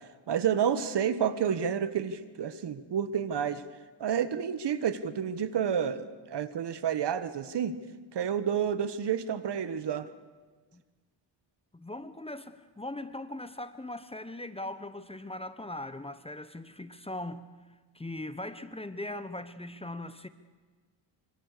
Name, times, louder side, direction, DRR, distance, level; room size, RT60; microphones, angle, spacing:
voice 1, 0.3-3.6 4.0-7.7 8.1-10.1, right 8 dB, 60° right, 1.5 m, -30 dB
voice 2, 11.7-17.5 17.9-20.3, left 1 dB, 10° left, 1.0 m, -40 dB
25.5 x 25.0 x 6.8 m
cardioid pair, 95°, 46 cm